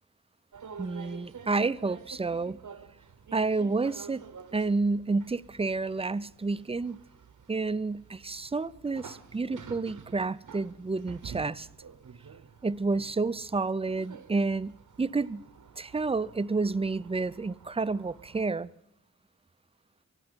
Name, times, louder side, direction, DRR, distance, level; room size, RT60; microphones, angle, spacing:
sound 1, 0.5-18.5, right 6 dB, 75° right, 0.9 m, -49 dB
voice 1, 0.8-2.6 3.3-4.2 4.5-7.0 7.5-11.7 12.6-15.4 15.8-18.7, right 3 dB, 20° right, 0.5 m, -30 dB
25.0 x 9.2 x 5.2 m
cardioid pair, 50°, 31 cm